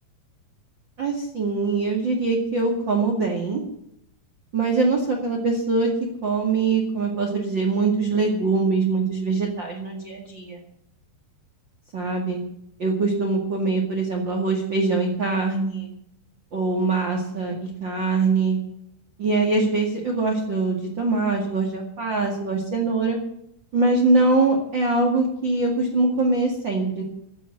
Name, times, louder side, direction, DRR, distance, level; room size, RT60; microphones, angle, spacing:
voice 1, 1.0-3.6 4.5-5.9 6.2-10.6 11.9-12.4 12.8-15.9 16.5-18.6 19.2-23.2 23.7-27.0, right 3 dB, 40° right, 0 dB, 1.7 m, -23 dB
15.0 x 7.3 x 10.0 m, 0.75 s
omnidirectional pair, 5.3 m